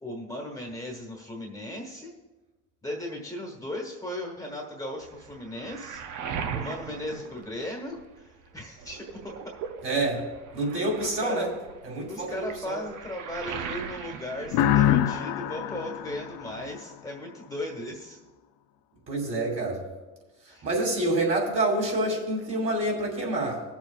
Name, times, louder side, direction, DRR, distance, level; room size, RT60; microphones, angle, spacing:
voice 1, 0.0-2.1 2.8-6.0 6.5-9.5 11.0-11.5 12.1-18.2 20.5-20.7, left 1 dB, 10° left, -1 dB, 1.3 m, -37 dB
Waves surf, 5.0-8.2 8.6-15.5 15.7-16.7, right 7 dB, 75° right, 0.9 m, -39 dB
voice 2, 9.8-10.2 10.5-11.5 11.8-12.8 19.1-19.8 20.6-23.6, right 2 dB, 45° right, 0 dB, 2.9 m, -27 dB
sound 1, 14.5-17.2, left 11 dB, 85° left, 0.6 m, -25 dB
21.0 x 7.1 x 2.4 m, 1.2 s
cardioid pair, 125°, 31 cm